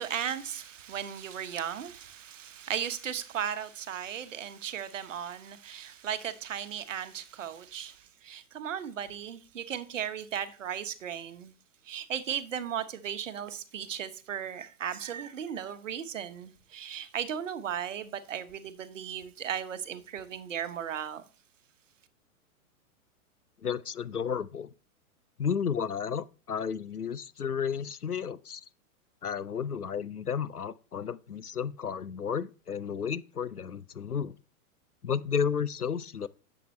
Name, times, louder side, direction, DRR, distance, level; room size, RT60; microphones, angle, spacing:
voice 1, 0.0-11.5 11.8-21.2, right 9 dB, 60° right, 1.2 m, -36 dB
voice 2, 23.6-24.7 25.4-28.6 29.2-34.4 35.0-36.3, left 7 dB, 85° left, 0.7 m, -32 dB
11.0 x 7.6 x 3.2 m
figure-of-eight pair, 110°, 44 cm